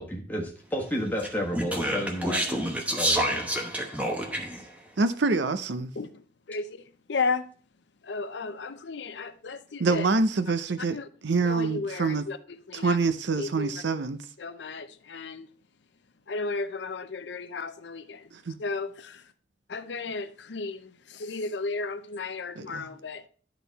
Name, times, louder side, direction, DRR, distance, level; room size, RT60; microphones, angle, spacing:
voice 1, 0.0-2.6 2.9-3.4, equal, 10° left, 1.3 m, -31 dB
Speech, 1.2-4.6, right 1 dB, 10° right, 0.9 m, -28 dB
voice 2, 5.0-5.9 9.8-11.0 11.2-12.2 12.7-14.2 18.5-18.6 22.6-22.9, right 3 dB, 75° right, 0.6 m, -26 dB
voice 3, 6.0-6.8 7.1-7.5 8.0-10.1 10.9-11.1 11.4-13.0 13.4-13.8 14.4-15.5 16.3-18.3 18.6-19.2 19.7-23.2, left 4 dB, 75° left, 0.6 m, -34 dB
11.5 x 3.9 x 4.0 m
head